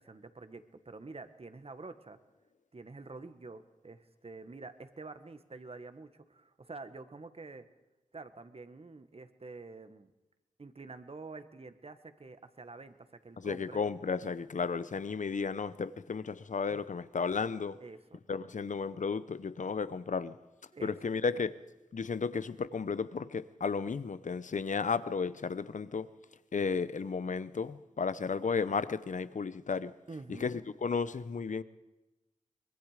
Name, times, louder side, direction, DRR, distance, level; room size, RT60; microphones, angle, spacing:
voice 1, 0.0-2.2 2.7-7.7 8.1-10.1 10.6-13.8 16.7-16.8 17.8-18.2 20.7-20.9 30.1-30.5, right 3 dB, 45° right, 1.5 m, -48 dB
voice 2, 13.4-17.8 18.3-20.4 20.8-21.5 21.9-26.1 26.5-29.9 30.3-31.6, left 5 dB, 70° left, 0.9 m, -33 dB
24.5 x 22.0 x 5.1 m
wide cardioid pair, 70°, 13 cm